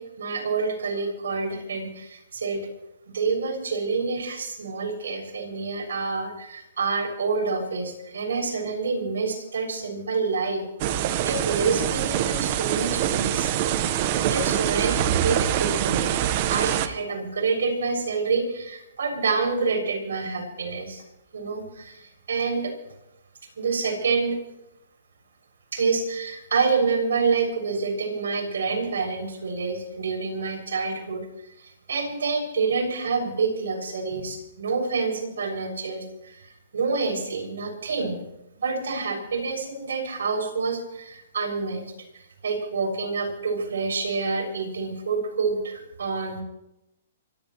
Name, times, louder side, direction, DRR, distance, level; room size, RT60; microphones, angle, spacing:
voice 1, 0.0-2.6 3.1-10.6 11.2-13.5 14.3-16.1 16.5-21.0 21.3-22.7 23.6-24.4 25.7-31.3 31.6-36.4 36.7-38.2 38.6-41.9 42.4-46.4, right 4 dB, 85° right, 3 dB, 6.9 m, -27 dB
sound 1, 10.8-16.9, right 11 dB, 40° right, 1.3 m, -24 dB
25.0 x 17.0 x 3.2 m, 0.85 s
hypercardioid pair, 150°, 0 cm